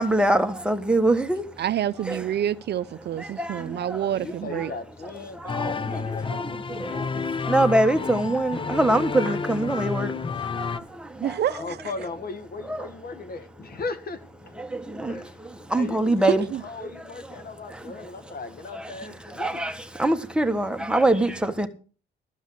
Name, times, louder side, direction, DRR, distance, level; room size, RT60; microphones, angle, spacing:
voice 1, 0.0-1.5 2.1-2.2 3.2-4.1 4.6-4.8 5.0-11.4 12.6-12.9 14.6-16.4 16.8-18.3 18.7-21.7, right 1 dB, 5° right, 1.5 m, -25 dB
voice 2, 1.6-4.7 11.2-11.9 16.3-16.6, right 10 dB, 55° right, 0.6 m, -27 dB
voice 3, 4.1-7.3 11.6-14.2 15.1-15.3 15.7-16.3 16.6-19.6, left 3 dB, 50° left, 1.6 m, -37 dB
sound 1, 5.5-10.8, left 5 dB, 25° left, 0.6 m, -30 dB
13.5 x 5.4 x 8.0 m
cardioid pair, 90°, 20 cm